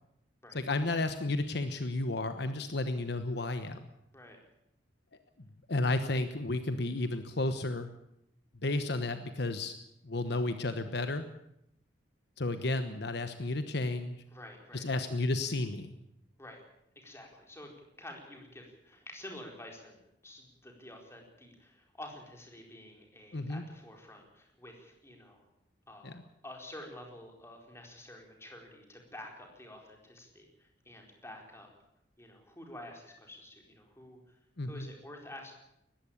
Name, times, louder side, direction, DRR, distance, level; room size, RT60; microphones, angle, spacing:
voice 1, 0.5-3.9 5.7-7.9 8.6-9.7 10.0-11.2 12.4-14.2 14.7-15.9 23.3-23.6 26.0-26.1 34.6-34.9, left 2 dB, 60° left, 9 dB, 1.2 m, -32 dB
voice 2, 14.3-15.1 16.4-16.6 17.0-25.5 25.9-31.7 32.2-35.5, left 1 dB, 15° left, 2 dB, 4.4 m, -49 dB
19.5 x 15.5 x 8.7 m, 0.78 s
head